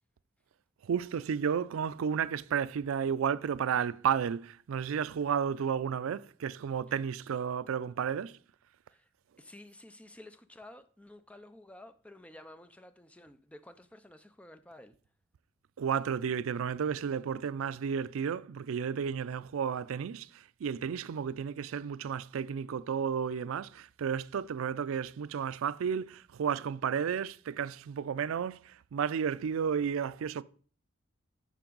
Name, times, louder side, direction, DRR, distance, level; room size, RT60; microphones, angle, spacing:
voice 1, 0.8-8.4 15.8-30.4, right 7 dB, 80° right, 0.4 m, -32 dB
voice 2, 9.4-14.9, left 1 dB, 5° left, 0.4 m, -52 dB
10.0 x 6.0 x 3.9 m
head